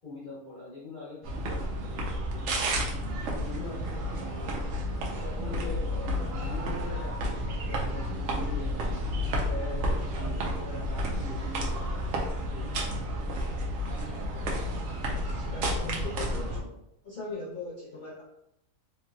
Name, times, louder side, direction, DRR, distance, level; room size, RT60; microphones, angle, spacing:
voice 1, 0.0-2.8 3.4-9.0 9.5-12.9, left 2 dB, 40° left, -8 dB, 1.0 m, -43 dB
sound 1, 1.2-16.6, equal, 70° right, 1.0 m, -31 dB
voice 2, 15.1-16.8 17.0-18.2, left 3 dB, 70° left, -6 dB, 0.4 m, -39 dB
3.1 x 2.9 x 2.2 m, 0.83 s
omnidirectional pair, 1.5 m